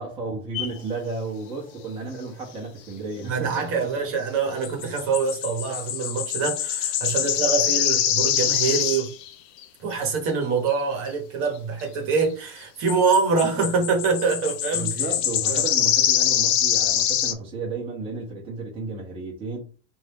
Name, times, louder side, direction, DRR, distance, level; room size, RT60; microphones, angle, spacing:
voice 1, 0.0-4.1 14.7-19.6, right 3 dB, 15° right, 1.0 m, -33 dB
sound 1, 0.5-0.8 4.6-9.3 9.6-9.7 10.7-10.8 12.2-12.3 12.9-17.3, left 10 dB, 50° left, 0.7 m, -24 dB
voice 2, 3.2-9.1 9.8-14.9 15.5-15.7, right 5 dB, 40° right, 1.3 m, -25 dB
4.3 x 2.7 x 3.5 m
supercardioid pair, 170°, 34 cm